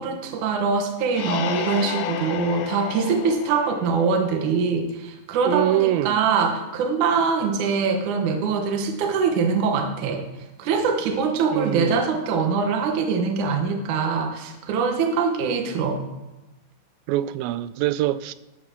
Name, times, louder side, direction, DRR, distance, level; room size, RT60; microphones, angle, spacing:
voice 1, 0.0-10.2 10.6-16.0, right 5 dB, 65° right, 2.3 m, -23 dB
sound 1, 1.1-4.7, left 9 dB, 75° left, 1.7 m, -32 dB
voice 2, 5.5-6.2 11.5-12.0 17.1-18.3, right 13 dB, 85° right, 2.4 m, -24 dB
13.0 x 5.6 x 6.0 m
omnidirectional pair, 4.1 m